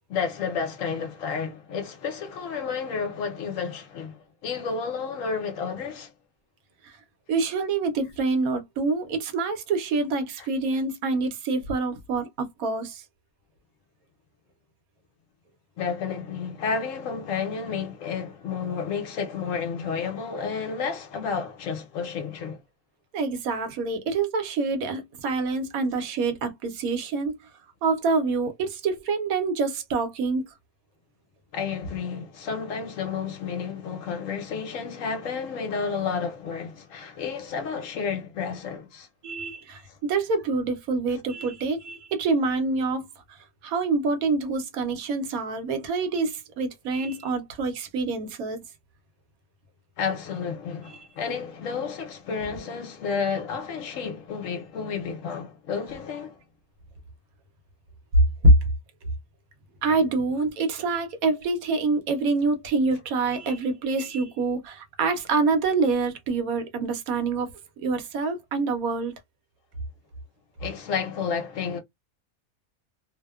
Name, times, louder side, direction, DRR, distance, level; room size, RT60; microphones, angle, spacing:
voice 1, 0.1-6.1 10.4-10.5 15.8-22.6 31.5-39.1 39.9-40.0 50.0-56.4 70.6-71.8, left 6 dB, 70° left, 1.0 m, -31 dB
voice 2, 7.3-13.0 23.1-27.5 27.8-30.5 39.2-48.6 51.0-51.1 58.4-58.5 59.8-67.5 67.8-69.1, right 3 dB, 75° right, 1.1 m, -26 dB
2.7 x 2.0 x 2.2 m
omnidirectional pair, 1.5 m